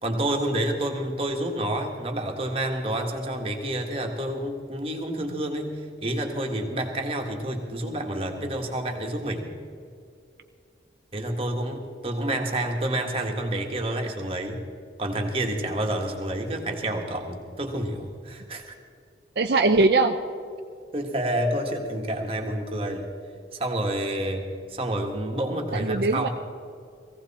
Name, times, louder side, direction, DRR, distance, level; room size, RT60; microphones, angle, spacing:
voice 1, 0.0-9.5 11.1-14.6 15.0-18.7 20.9-23.1 23.5-26.3, right 1 dB, 30° right, 2 dB, 1.7 m, -29 dB
voice 2, 19.4-20.2 25.7-26.3, right 3 dB, 60° right, 6 dB, 0.6 m, -21 dB
18.0 x 16.0 x 4.3 m, 2.3 s
head